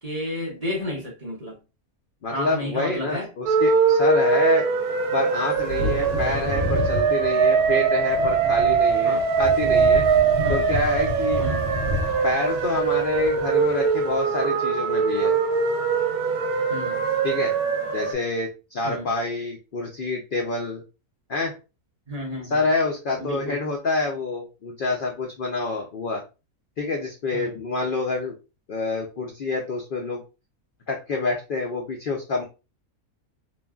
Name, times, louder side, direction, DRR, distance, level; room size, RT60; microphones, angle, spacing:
voice 1, 0.0-1.6 2.3-3.3 9.0-9.3 10.4-10.7 11.4-11.7 16.7-17.0 18.8-19.1 22.1-22.7 23.2-23.6 27.3-27.6, left 1 dB, 35° right, -3 dB, 0.7 m, -32 dB
voice 2, 2.2-4.7 5.1-10.0 10.5-11.5 12.2-15.3 17.2-17.5 17.9-20.8 21.3-21.5 22.4-26.2 26.8-28.3 28.7-30.2 30.9-32.4, left 3 dB, 80° left, 1 dB, 0.4 m, -27 dB
sound 1, 3.5-18.1, right 5 dB, 80° right, 1.1 m, -22 dB
Wind / Thunder, 5.5-13.8 14.1-14.2, left 2 dB, 60° right, 1.0 m, -30 dB
3.1 x 2.2 x 2.3 m, 0.29 s
omnidirectional pair, 1.6 m